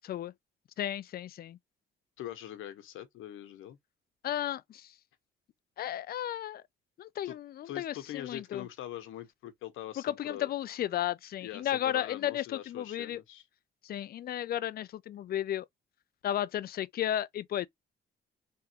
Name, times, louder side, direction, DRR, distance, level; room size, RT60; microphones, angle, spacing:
voice 1, 0.8-1.6 4.2-4.9 5.8-6.6 7.0-8.6 10.0-13.2 13.8-15.7 16.2-17.7, left 11 dB, 50° left, 0.4 m, -34 dB
voice 2, 2.2-3.8 7.2-7.4 7.6-10.5 11.4-13.5, left 12 dB, 85° left, 1.0 m, -43 dB
3.5 x 3.1 x 2.9 m
cardioid pair, 90°, 20 cm